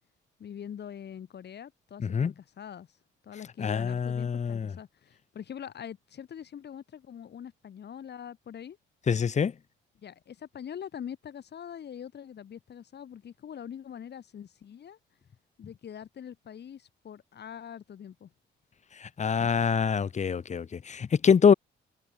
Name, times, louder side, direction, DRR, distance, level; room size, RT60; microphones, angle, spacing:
voice 1, 0.4-2.9 3.2-8.8 10.0-15.0 15.6-18.3, left 9 dB, 60° left, 5.2 m, -43 dB
voice 2, 3.6-4.7 9.1-9.5 19.0-21.5, left 6 dB, 35° left, 0.9 m, -25 dB
cardioid pair, 90°, 20 cm